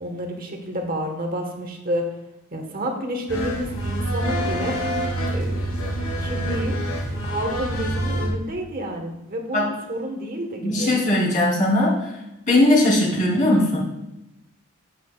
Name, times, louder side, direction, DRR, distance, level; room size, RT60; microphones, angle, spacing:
voice 1, 0.0-2.1 2.5-4.8 5.3-5.8 6.2-6.8 7.2-10.9, equal, 45° right, 3 dB, 1.3 m, -29 dB
sound 1, 3.3-8.3, right 1 dB, 85° left, 2.6 m, -26 dB
voice 2, 10.6-11.9 12.5-13.8, left 1 dB, 40° left, -4 dB, 3.2 m, -19 dB
11.5 x 8.6 x 2.4 m, 0.90 s
head